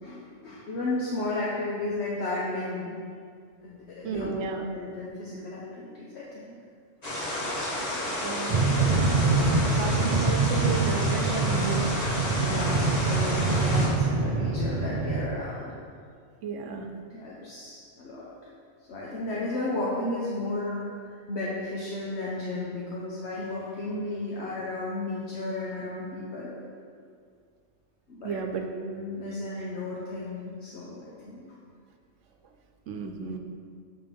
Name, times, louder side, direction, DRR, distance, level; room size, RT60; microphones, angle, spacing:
voice 1, 0.0-2.9 3.6-6.6 12.4-15.7 17.1-18.3 18.9-26.5 28.1-28.4 28.7-31.4, left 2 dB, 65° left, -6 dB, 1.2 m, -34 dB
voice 2, 4.0-4.6 7.6-7.8 8.2-8.6 9.6-11.8 16.4-16.9 28.2-28.7 32.9-33.4, right 6 dB, 80° right, 4 dB, 1.1 m, -33 dB
sound 1, 7.0-13.9, left 1 dB, 35° left, 1.7 m, -31 dB
sound 2, 8.5-15.3, right 3 dB, 55° right, 0.4 m, -25 dB
9.0 x 4.2 x 5.2 m, 2.2 s
omnidirectional pair, 1.2 m